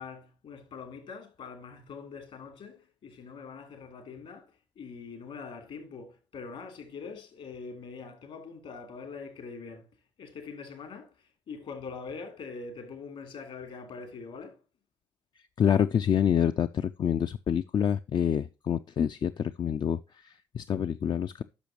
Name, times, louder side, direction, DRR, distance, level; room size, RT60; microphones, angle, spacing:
voice 1, 0.0-9.9 10.2-14.6, left 5 dB, 65° left, 3.1 m, -43 dB
voice 2, 15.6-20.0 20.2-21.4, left 8 dB, 40° left, 0.4 m, -27 dB
10.5 x 6.3 x 2.9 m
hypercardioid pair, 50°, 11 cm